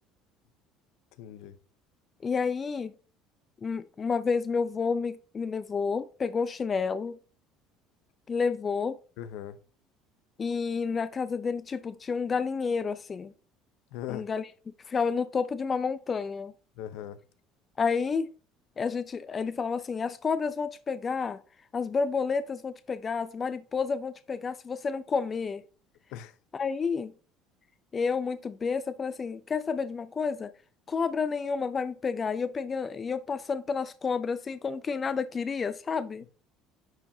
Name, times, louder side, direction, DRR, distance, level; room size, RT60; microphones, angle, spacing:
voice 1, 1.2-1.6 9.2-9.6 13.9-14.3 16.8-17.2 26.1-26.3, left 11 dB, 70° left, 0.7 m, -39 dB
voice 2, 2.2-2.9 3.6-7.2 8.3-9.0 10.4-13.3 14.1-14.5 14.9-16.5 17.8-18.3 18.8-21.4 21.7-25.6 26.5-27.1 27.9-30.5 30.9-36.2, left 5 dB, 35° left, 0.5 m, -30 dB
10.5 x 4.6 x 2.7 m
hypercardioid pair, 75°, 0 cm